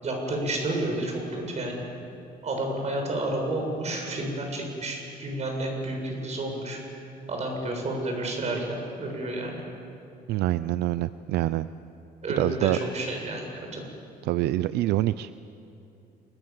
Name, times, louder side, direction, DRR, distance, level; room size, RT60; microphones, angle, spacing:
voice 1, 0.0-1.8 2.4-6.8 7.3-9.6 12.2-13.4 13.7-13.8, right 1 dB, 40° right, 2 dB, 7.4 m, -30 dB
voice 2, 10.3-11.7 12.4-12.8 14.2-15.3, right 15 dB, 80° right, 15 dB, 0.5 m, -25 dB
29.0 x 22.0 x 7.5 m, 2.7 s
cardioid pair, 110°, 17 cm